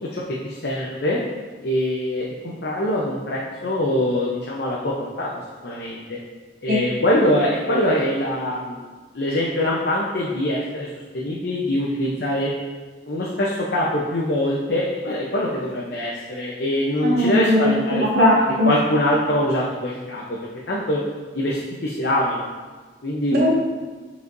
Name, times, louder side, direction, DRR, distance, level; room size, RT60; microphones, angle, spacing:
voice 1, 0.0-1.2 1.6-5.3 5.6-6.2 6.6-8.8 9.1-10.9 11.1-12.5 13.1-18.1 18.6-20.4 20.7-21.0 21.3-22.5 23.0-23.4, left 1 dB, 65° left, -4 dB, 0.8 m, -23 dB
voice 2, 17.0-18.7 23.4-23.5, left 1 dB, 55° right, -6 dB, 1.7 m, -18 dB
8.0 x 5.0 x 2.7 m, 1.4 s
head